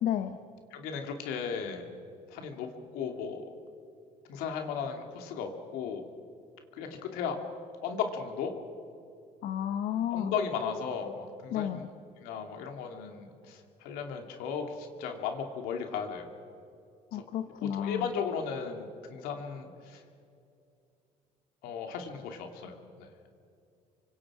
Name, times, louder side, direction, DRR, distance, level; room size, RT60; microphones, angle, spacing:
voice 1, 0.0-0.4 9.4-10.3 11.5-11.8 17.1-18.1, left 10 dB, 70° left, 7 dB, 1.2 m, -32 dB
voice 2, 0.7-1.9 2.3-3.4 4.3-6.0 6.7-7.4 7.8-8.5 10.1-11.8 12.2-16.3 17.1-17.2 17.7-20.0 21.6-23.1, left 6 dB, 85° left, 4 dB, 2.7 m, -36 dB
28.5 x 25.0 x 5.0 m, 2.5 s
cardioid pair, 95°, 15 cm